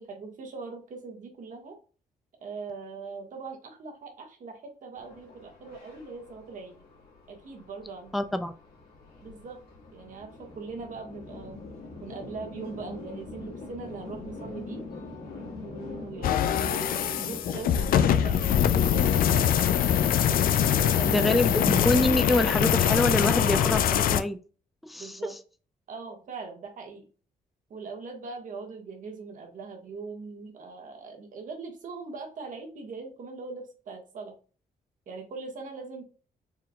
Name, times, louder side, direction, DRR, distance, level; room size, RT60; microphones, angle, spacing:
voice 1, 0.0-1.8 2.4-6.8 7.3-8.2 9.2-9.6 9.9-11.6 12.0-14.8 15.6-20.1 20.4-21.3 25.0-25.3 25.9-27.1 27.7-34.3 35.1-36.0, right 4 dB, 60° right, 3 dB, 1.4 m, -41 dB
sound 1, 5.0-19.5, left 3 dB, 85° left, 1.8 m, -43 dB
voice 2, 8.1-8.5 21.1-24.4 24.8-25.2, left 1 dB, ahead, 10 dB, 0.3 m, -26 dB
sound 2, 16.2-24.2, left 9 dB, 70° left, 0.4 m, -23 dB
4.5 x 3.7 x 2.3 m, 0.36 s
cardioid pair, 120°, 15 cm